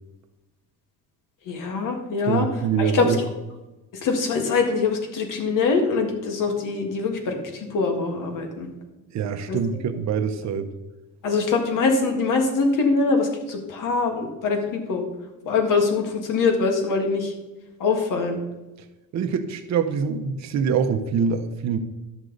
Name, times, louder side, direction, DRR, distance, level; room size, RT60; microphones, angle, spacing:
voice 1, 1.5-2.5 2.8-3.2 4.0-8.7 9.5-9.6 11.2-15.0 15.5-17.3 17.8-18.4, left 4 dB, 65° left, 3 dB, 1.8 m, -23 dB
voice 2, 2.3-3.2 9.1-10.7 19.1-21.8, right 6 dB, 50° right, 7 dB, 0.8 m, -24 dB
12.0 x 6.5 x 3.9 m, 1.1 s
cardioid pair, 160°, 34 cm